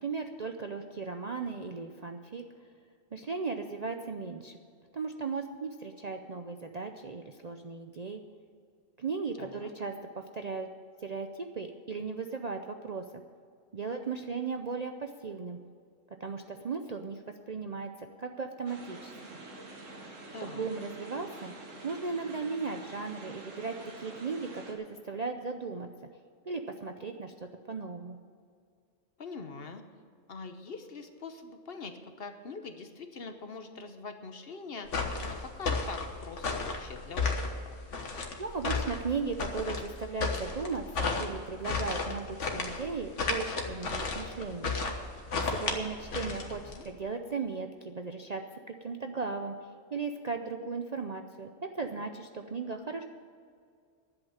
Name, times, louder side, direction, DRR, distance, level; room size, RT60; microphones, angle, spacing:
voice 1, 0.0-2.4 3.1-4.6 4.9-8.2 9.0-10.7 11.0-13.1 13.7-15.6 16.2-17.9 18.2-19.4 20.4-21.5 21.8-25.9 26.5-27.3 27.7-28.2 38.4-44.8 45.3-53.0, right 4 dB, 45° right, 5 dB, 0.5 m, -36 dB
voice 2, 9.4-9.7 20.3-20.8 29.2-29.8 30.3-34.9 35.4-37.7 46.2-46.9, left 4 dB, 50° left, 7 dB, 1.1 m, -43 dB
sound 1, 18.7-24.7, right 2 dB, 80° right, 1.9 m, -47 dB
sound 2, 34.9-46.9, left 4 dB, 70° left, 1.6 m, -33 dB
11.0 x 8.0 x 8.7 m, 2.2 s
omnidirectional pair, 1.3 m